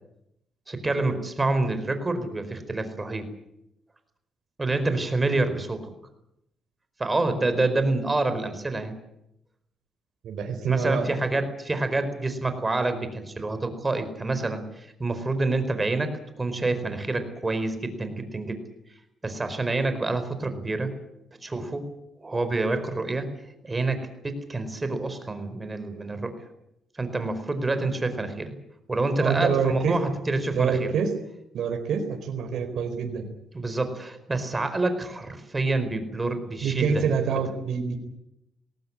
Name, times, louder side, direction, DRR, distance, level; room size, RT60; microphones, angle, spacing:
voice 1, 0.7-3.3 4.6-5.9 7.0-8.9 10.7-18.6 19.2-20.9 21.4-21.9 22.2-23.3 23.6-26.3 27.0-28.5 28.9-30.9 33.5-37.0, right 2 dB, 20° right, 9 dB, 4.7 m, -27 dB
voice 2, 10.2-11.1 29.2-30.0 30.5-31.1 31.5-33.3 36.6-38.0, right 6 dB, 70° right, 4 dB, 4.5 m, -26 dB
20.5 x 18.0 x 10.0 m, 0.81 s
cardioid pair, 90°, 0 cm